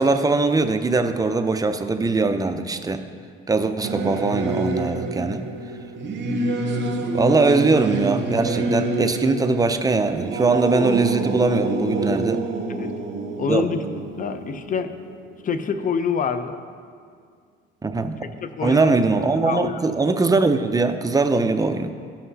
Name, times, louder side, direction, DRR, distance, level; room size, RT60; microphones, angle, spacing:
voice 1, 0.0-3.0 3.5-5.4 7.1-12.4 13.5-13.6 17.8-18.2 18.6-21.9, right 3 dB, 20° right, 7 dB, 0.5 m, -21 dB
Singing / Musical instrument, 3.8-15.7, right 2 dB, 65° right, 0.9 m, -27 dB
voice 2, 13.4-13.8 14.2-14.9 15.4-16.6 18.2-18.9 19.5-19.8, left 6 dB, 45° left, 10 dB, 0.6 m, -26 dB
13.5 x 5.8 x 2.8 m, 2.1 s
cardioid pair, 90°, 20 cm